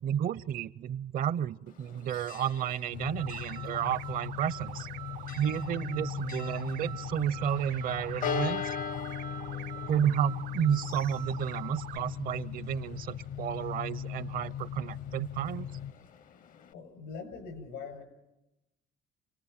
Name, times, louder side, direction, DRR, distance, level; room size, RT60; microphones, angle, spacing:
voice 1, 0.0-4.9 5.4-8.7 9.9-15.7, right 9 dB, 55° right, 18 dB, 0.7 m, -31 dB
Church bell, 1.7-16.7, left 8 dB, 50° left, 0.7 m, -43 dB
sound 1, 2.9-15.9, left 10 dB, 70° left, 1.1 m, -39 dB
sound 2, 3.2-12.0, right 13 dB, 80° right, 1.2 m, -44 dB
voice 2, 16.7-18.0, left 5 dB, 85° left, 8 dB, 7.2 m, -42 dB
28.5 x 18.5 x 5.9 m, 0.93 s
cardioid pair, 110°, 17 cm